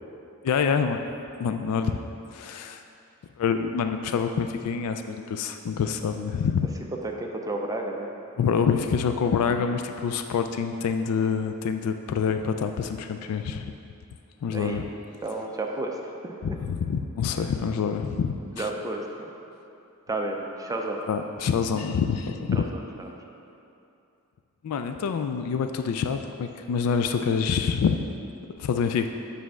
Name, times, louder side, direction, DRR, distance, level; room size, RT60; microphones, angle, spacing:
voice 1, 0.4-1.0 1.4-2.0 2.3-2.8 3.4-6.7 8.4-13.7 14.4-14.9 16.4-18.7 21.1-22.6 24.6-28.0 28.6-29.1, left 6 dB, 85° left, 7 dB, 0.3 m, -26 dB
voice 2, 7.0-8.1 14.5-14.9 15.2-16.0 16.2-16.6 18.6-19.3 20.1-21.0 22.5-22.7 23.0-23.1, right 2 dB, 15° right, 1 dB, 0.4 m, -31 dB
7.4 x 3.4 x 6.0 m, 2.7 s
head